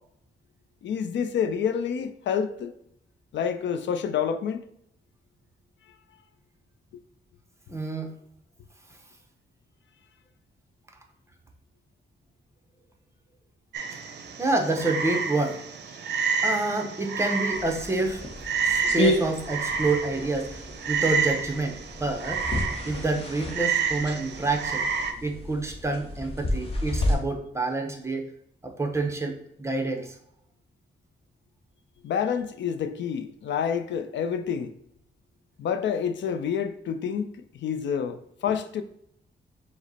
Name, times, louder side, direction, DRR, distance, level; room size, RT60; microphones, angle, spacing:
voice 1, 0.8-2.7 3.3-4.7 32.0-34.7 35.6-38.8, left 7 dB, 75° left, 0.4 m, -28 dB
voice 2, 7.7-8.1 14.4-15.6 16.4-18.2 18.6-20.6 20.9-22.4 22.8-24.9 25.2-28.3 28.6-30.2, right 2 dB, 15° right, 0.6 m, -28 dB
Frog, 13.7-25.1, right 5 dB, 65° right, 0.5 m, -30 dB
sound 1, 17.5-27.1, left 1 dB, 30° left, 0.8 m, -31 dB
5.0 x 2.0 x 4.0 m
wide cardioid pair, 145°, 19 cm